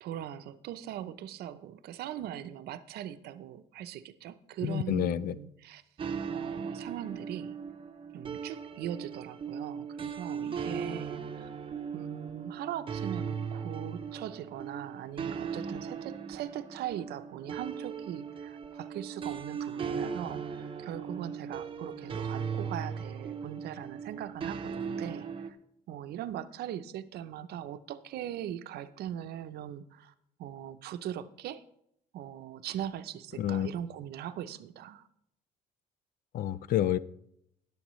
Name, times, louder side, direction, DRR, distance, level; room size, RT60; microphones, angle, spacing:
voice 1, 0.0-5.8 6.3-7.6 8.1-11.5 11.9-25.6 25.9-30.1 30.4-31.6 32.1-35.1, right 10 dB, 70° right, 0.6 m, -40 dB
voice 2, 4.6-5.3 33.4-33.7 36.3-37.0, left 11 dB, 60° left, 0.4 m, -28 dB
sound 1, 6.0-25.5, right 6 dB, 30° right, 0.7 m, -38 dB
19.5 x 7.1 x 3.1 m
cardioid pair, 110°, 17 cm